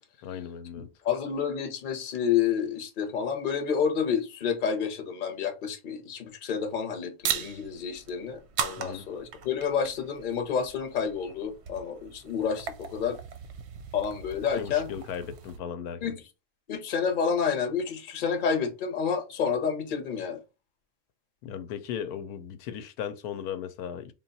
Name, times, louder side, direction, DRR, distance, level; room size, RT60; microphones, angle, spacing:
voice 1, 0.2-0.9 8.8-9.1 14.6-16.2 21.4-24.1, left 8 dB, 90° left, 1.1 m, -37 dB
voice 2, 1.0-13.2 13.9-14.9 16.0-16.2 16.7-20.4, left 7 dB, 40° left, 0.8 m, -29 dB
sound 1, 7.2-15.6, right 7 dB, 60° right, 0.7 m, -38 dB
3.8 x 2.3 x 3.9 m
omnidirectional pair, 1.6 m